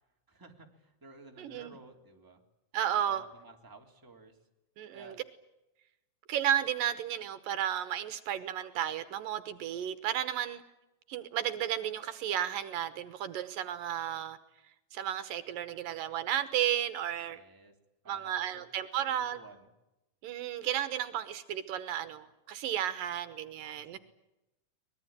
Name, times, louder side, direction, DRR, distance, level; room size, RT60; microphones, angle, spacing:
voice 1, 0.3-2.4 2.8-4.4 4.9-5.2 17.3-17.7 18.0-18.6 19.1-19.7 23.9-24.0, right 3 dB, 5° right, 2.9 m, -54 dB
voice 2, 1.4-1.7 2.7-3.2 4.8-5.2 6.3-10.6 11.1-14.4 14.9-17.4 18.1-19.4 20.2-24.0, right 11 dB, 75° right, 2.7 m, -33 dB
24.0 x 21.0 x 9.0 m
omnidirectional pair, 4.1 m